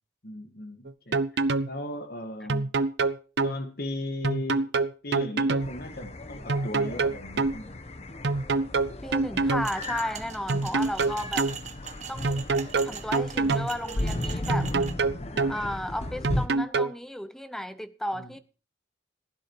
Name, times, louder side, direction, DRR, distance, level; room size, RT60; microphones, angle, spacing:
voice 1, 0.2-2.7 3.4-4.7 5.0-7.8 18.1-18.4, left 1 dB, 50° left, 1.8 m, -37 dB
sound 1, 0.9-1.7 2.5-3.6 4.2-5.7 6.5-7.6 8.2-9.7 10.5-11.6 12.2-13.7 14.5-15.6 16.2-16.9, right 3 dB, 60° right, 0.6 m, -25 dB
sound 2, 5.6-16.5, left 1 dB, 35° left, 1.0 m, -36 dB
voice 2, 9.0-11.5 12.1-12.5 12.8-14.8 15.5-18.4, equal, ahead, 0.7 m, -34 dB
sound 3, 9.6-14.9, right 8 dB, 40° right, 1.1 m, -41 dB
16.0 x 10.5 x 4.7 m
head